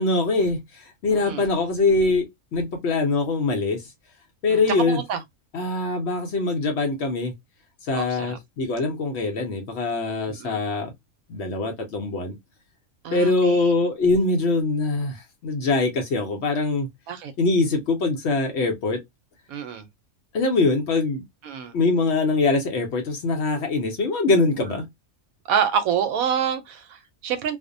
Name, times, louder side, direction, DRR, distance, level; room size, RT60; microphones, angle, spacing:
voice 1, 0.0-3.8 4.4-5.0 5.5-7.3 7.8-10.9 11.3-12.4 13.1-16.9 17.4-19.0 20.3-21.2 21.7-24.9, left 3 dB, 60° left, 0.8 m, -23 dB
voice 2, 1.1-1.5 4.5-5.2 7.9-8.4 10.3-10.6 13.0-13.6 17.1-17.3 19.5-19.9 21.4-21.8 25.5-27.6, right 8 dB, 80° right, 1.0 m, -27 dB
2.5 x 2.1 x 2.5 m
omnidirectional pair, 1.5 m